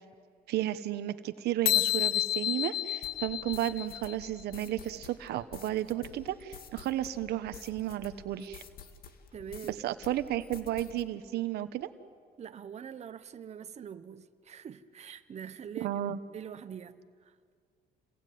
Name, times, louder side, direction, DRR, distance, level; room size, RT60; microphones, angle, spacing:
voice 1, 0.5-8.6 9.7-11.9 15.8-16.2, right 13 dB, 75° right, 1.2 m, -33 dB
sound 1, 1.7-4.3, left 13 dB, 85° left, 0.9 m, -30 dB
sound 2, 3.0-9.8 10.0-11.0, left 7 dB, 60° left, 2.2 m, -50 dB
voice 2, 9.3-9.8 12.4-16.1 16.3-17.4, right 8 dB, 40° right, 1.2 m, -44 dB
29.5 x 21.5 x 9.4 m
cardioid pair, 110°, 17 cm